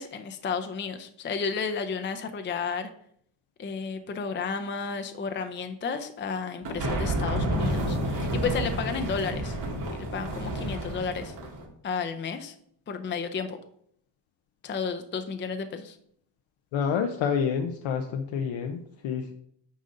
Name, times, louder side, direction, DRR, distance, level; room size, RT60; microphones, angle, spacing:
voice 1, 0.0-2.9 3.6-9.6 9.9-11.3 11.8-12.5 12.9-13.6 14.6-16.0, left 5 dB, 25° left, 8 dB, 0.5 m, -32 dB
sound 1, 6.6-11.6, right 1 dB, 60° right, 2.7 m, -30 dB
voice 2, 16.7-19.3, left 7 dB, 90° left, 4 dB, 0.8 m, -28 dB
9.3 x 5.1 x 3.8 m, 0.67 s
cardioid pair, 140°, 45 cm